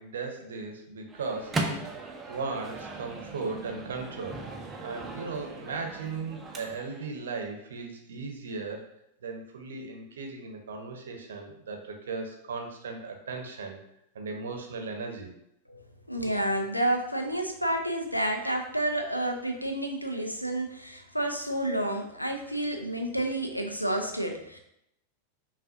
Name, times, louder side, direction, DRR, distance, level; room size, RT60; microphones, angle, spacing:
voice 1, 0.0-8.9 9.2-13.8 14.1-15.3, right 4 dB, 65° right, 3 dB, 0.7 m, -37 dB
Microwave oven, 1.1-7.1, right 2 dB, 15° right, 0.5 m, -38 dB
voice 2, 16.1-24.6, right 1 dB, 90° left, 4 dB, 0.5 m, -30 dB
5.8 x 2.4 x 2.6 m, 0.79 s
figure-of-eight pair, 90°, 0 cm